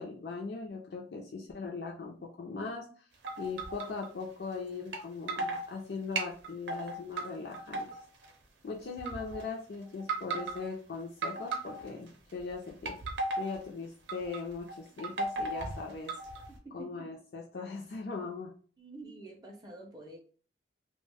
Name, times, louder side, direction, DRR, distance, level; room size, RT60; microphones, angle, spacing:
voice 1, 0.0-2.8 3.4-7.9 8.6-12.9 13.4-16.2 16.7-18.5, left 4 dB, 60° left, -1 dB, 0.4 m, -39 dB
sound 1, 3.2-4.1 4.9-5.0 5.3-5.7 6.2-7.3 7.5-8.3 9.0-9.4 10.0-10.6 11.2-12.1 12.7-13.6 14.1-14.4 14.7-16.6, right 2 dB, 75° right, 0.5 m, -36 dB
voice 2, 16.5-17.1 18.8-20.2, right 2 dB, 20° right, 1 dB, 0.4 m, -48 dB
2.4 x 2.1 x 3.3 m, 0.42 s
head